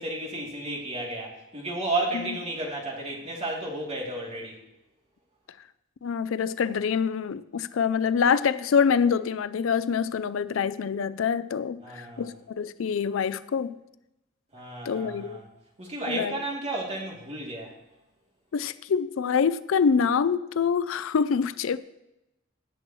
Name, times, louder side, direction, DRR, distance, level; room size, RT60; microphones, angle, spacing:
voice 1, 0.0-4.6 11.8-12.3 14.5-15.4 15.8-17.7, right 2 dB, 35° right, 2.8 m, -32 dB
voice 2, 6.0-13.7 14.9-15.4 16.1-16.4 18.5-21.8, left 6 dB, 70° left, 0.4 m, -25 dB
18.0 x 7.6 x 3.1 m
head